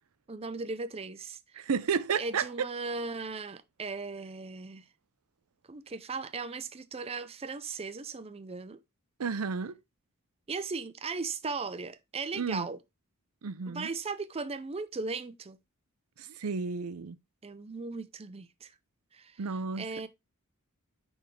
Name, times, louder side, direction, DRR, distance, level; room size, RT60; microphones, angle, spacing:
voice 1, 0.3-1.4 2.1-4.9 5.7-8.8 10.5-12.8 13.7-15.6 17.4-18.7 19.1-19.4 19.8-20.1, right 4 dB, 25° right, 0.5 m, -37 dB
voice 2, 1.6-2.4 9.2-9.7 12.3-12.7 13.4-13.9 16.2-17.2 19.4-20.1, right 5 dB, 80° right, 0.6 m, -32 dB
9.9 x 3.6 x 3.2 m
head